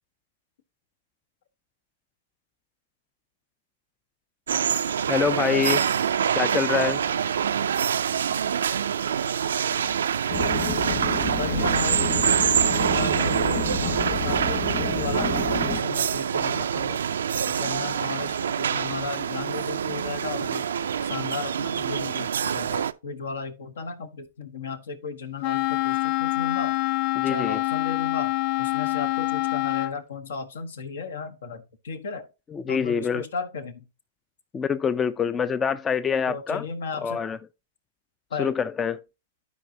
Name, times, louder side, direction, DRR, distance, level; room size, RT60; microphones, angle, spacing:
sound 1, 4.5-22.9, right 8 dB, 85° right, 0.4 m, -25 dB
voice 1, 5.1-5.9 6.3-7.0 27.2-27.6 32.5-33.3 34.5-36.6 37.0-37.4 38.4-39.0, left 6 dB, 20° left, 0.3 m, -25 dB
sound 2, 10.3-15.8, left 4 dB, 40° left, 2.5 m, -30 dB
voice 2, 11.3-17.0 17.5-20.7 21.0-26.8 27.2-28.3 28.6-32.3 32.7-33.8 36.3-37.3 38.3-38.5, left 4 dB, 80° left, 1.2 m, -35 dB
Wind instrument woodwind instrument, 25.4-30.0, left 19 dB, 65° left, 0.6 m, -26 dB
12.5 x 4.6 x 2.7 m
hypercardioid pair, 125°, 0 cm